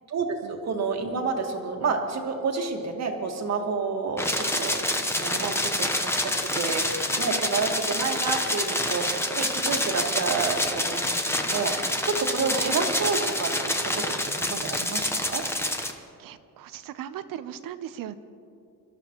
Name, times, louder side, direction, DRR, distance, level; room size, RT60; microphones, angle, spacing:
voice 1, 0.1-6.8 7.1-15.4, right 4 dB, 50° right, 3 dB, 1.7 m, -29 dB
sound 1, 4.2-15.9, left 1 dB, 5° left, 0.9 m, -27 dB
voice 2, 16.2-18.1, right 10 dB, 70° right, 12 dB, 0.7 m, -38 dB
24.0 x 12.5 x 3.0 m, 2.5 s
cardioid pair, 120°, 35 cm